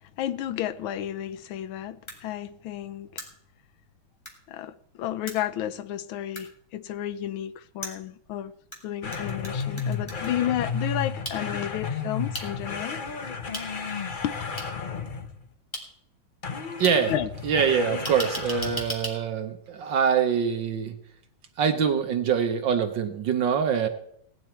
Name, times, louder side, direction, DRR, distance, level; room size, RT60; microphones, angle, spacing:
voice 1, 0.2-3.2 4.5-8.5 8.8-13.0 14.2-14.3 17.1-17.3 17.9-18.0, left 11 dB, 85° left, 1.5 m, -32 dB
sound 1, 2.1-2.2 3.2-3.3 4.2-4.3 5.3-5.4 6.3-6.4 7.8-8.8 9.1-10.3 11.2-11.4 12.3-12.4 13.5-13.6 14.6-14.7 15.7-15.8 16.8-16.9 18.0-19.1, equal, 15° left, 2.7 m, -35 dB
sound 2, 9.0-15.5 16.4-19.0, left 5 dB, 50° left, 0.5 m, -33 dB
voice 2, 16.8-17.1 17.4-21.0 21.6-23.9, right 7 dB, 70° right, 1.6 m, -24 dB
17.5 x 10.5 x 4.4 m
omnidirectional pair, 2.2 m